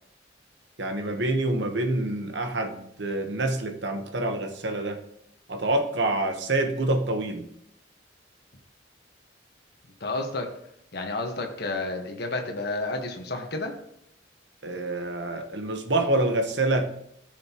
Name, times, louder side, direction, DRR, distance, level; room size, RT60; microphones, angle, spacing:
voice 1, 0.8-5.0 5.5-7.5 14.6-16.9, right 2 dB, 70° right, 6 dB, 1.1 m, -27 dB
voice 2, 10.0-10.5 10.9-13.7, left 2 dB, 60° left, 3 dB, 1.4 m, -30 dB
14.5 x 6.5 x 3.0 m, 0.74 s
head